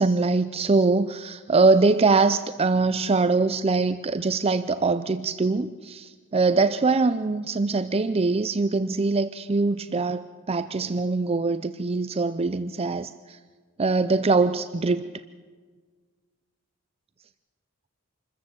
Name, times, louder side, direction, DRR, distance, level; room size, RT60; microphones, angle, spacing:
voice 1, 0.0-13.4 13.8-15.1, right 3 dB, 25° right, 12 dB, 0.5 m, -23 dB
26.5 x 14.0 x 7.7 m, 1.5 s
head